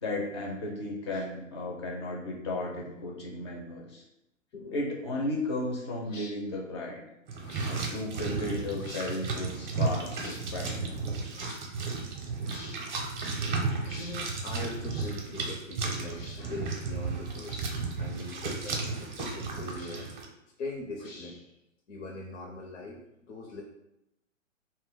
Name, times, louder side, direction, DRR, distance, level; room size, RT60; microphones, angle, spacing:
voice 1, 0.0-4.0 4.7-7.0 7.7-10.9, left 2 dB, 25° left, -2 dB, 0.4 m, -34 dB
sound 1, 6.0-6.3 7.4-7.7 8.7-9.1 10.2-10.4 11.3-11.6 12.4-12.8 13.8-14.2 14.9-15.1 16.1-16.4 17.4-17.7 18.6-18.9 19.7-20.2 21.0-21.5, left 3 dB, 90° left, 0.9 m, -48 dB
sound 2, 7.3-20.3, right 4 dB, 35° right, 0.6 m, -34 dB
voice 2, 13.8-17.7 18.0-20.1 20.6-21.4 21.9-23.6, left 2 dB, 65° left, 0 dB, 0.6 m, -41 dB
2.2 x 2.1 x 3.8 m, 0.87 s
hypercardioid pair, 135°, 39 cm